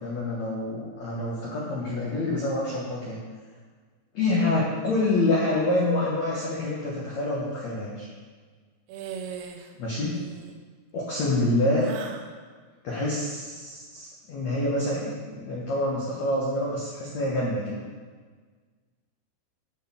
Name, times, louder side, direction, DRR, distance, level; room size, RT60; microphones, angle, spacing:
voice 1, 0.0-3.2 4.1-8.1 9.8-10.2 10.9-11.8 12.8-17.8, left 2 dB, 90° left, -5 dB, 1.5 m, -27 dB
sound 1, 8.9-9.7 10.0-10.6 11.8-12.3, right 7 dB, 85° right, 2.2 m, -39 dB
11.0 x 4.2 x 7.3 m, 1.5 s
omnidirectional pair, 5.5 m